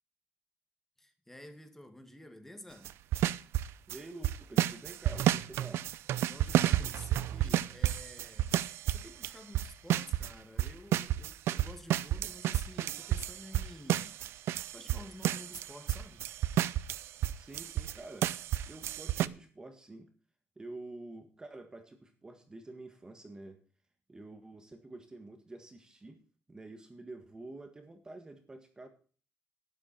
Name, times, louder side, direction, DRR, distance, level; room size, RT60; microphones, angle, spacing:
voice 1, 1.0-2.9 6.3-16.2, left 1 dB, 10° left, 2.0 m, -51 dB
sound 1, 2.8-4.0 4.2-10.3 10.6-17.9 18.2-19.3, right 13 dB, 85° right, 0.6 m, -30 dB
voice 2, 3.9-5.9 17.4-18.3 18.7-20.1 20.5-23.6 24.1-26.2 26.5-28.9, right 2 dB, 15° right, 1.7 m, -48 dB
12.5 x 10.5 x 4.3 m
cardioid pair, 140°, 4 cm